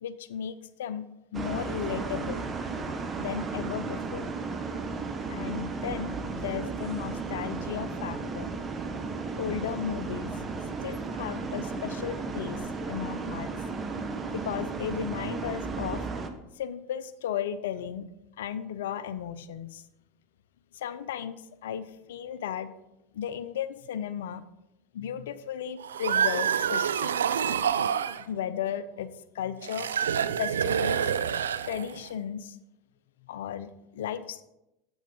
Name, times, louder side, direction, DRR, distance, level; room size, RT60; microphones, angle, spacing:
voice 1, 0.0-1.1 1.3-2.5 3.2-4.3 5.3-8.7 9.4-10.4 10.8-13.5 14.3-16.0 16.6-18.1 18.4-19.8 20.7-22.7 23.1-24.4 24.9-27.1 28.2-29.9 30.3-31.1 31.6-32.6 33.3-34.4, left 9 dB, 80° left, 14 dB, 0.5 m, -35 dB
sound 1, 1.3-16.3, right 4 dB, 25° right, 1.0 m, -34 dB
sound 2, 25.8-28.2 29.6-32.1, right 8 dB, 90° right, 0.3 m, -27 dB
7.9 x 6.2 x 5.3 m, 0.91 s
hypercardioid pair, 90°, 0 cm